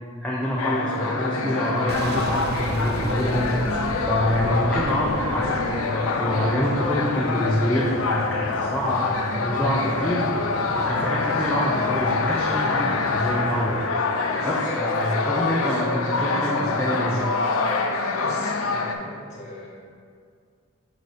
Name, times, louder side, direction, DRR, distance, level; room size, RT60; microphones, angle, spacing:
voice 1, 0.2-3.5 4.1-10.3 10.8-13.8 14.4-17.3, equal, 5° left, -6 dB, 0.6 m, -26 dB
sound 1, 0.6-18.9, left 4 dB, 90° left, 0.5 m, -26 dB
Boom, 1.9-6.7, right 2 dB, 50° right, 0.5 m, -33 dB
sound 2, 4.4-13.8, left 1 dB, 80° right, 1.5 m, -37 dB
voice 2, 18.2-19.7, left 1 dB, 35° left, -7 dB, 1.6 m, -39 dB
7.9 x 2.7 x 4.9 m, 2.1 s
head